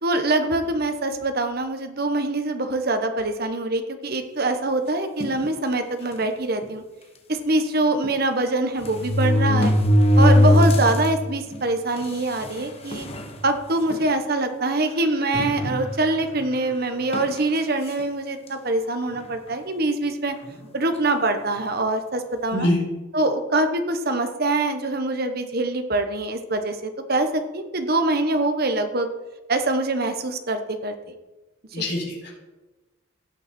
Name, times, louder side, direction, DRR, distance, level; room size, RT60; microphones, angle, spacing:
voice 1, 0.0-6.8 7.3-9.7 10.2-13.1 13.4-20.4 20.7-22.7 23.1-29.1 29.5-31.1 31.7-31.9, right 2 dB, 45° right, 7 dB, 1.1 m, -24 dB
sound 1, 5.2-5.5 6.2-6.3 6.6-6.7 8.0-8.1 8.8-11.1 11.5-11.6 12.4-12.5 12.9-13.3 13.9-14.1 15.3-16.2 17.1-17.4, left 1 dB, 30° left, 1.0 m, -19 dB
voice 2, 31.7-32.3, left 1 dB, 55° left, -3 dB, 4.2 m, -24 dB
17.0 x 6.6 x 4.4 m, 1.1 s
head